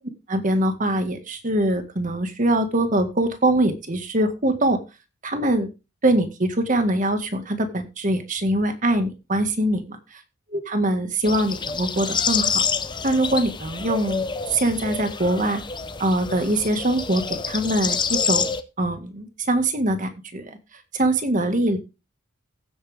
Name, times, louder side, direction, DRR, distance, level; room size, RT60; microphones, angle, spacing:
voice 1, 0.3-4.8 5.2-5.7 6.0-9.8 10.5-12.6 13.0-14.2 14.5-15.6 16.0-20.6 20.9-21.8, right 1 dB, 35° right, 7 dB, 1.9 m, -23 dB
sound 1, 11.2-18.6, left 6 dB, 20° left, 0.8 m, -27 dB
15.5 x 8.5 x 3.6 m, 0.29 s
head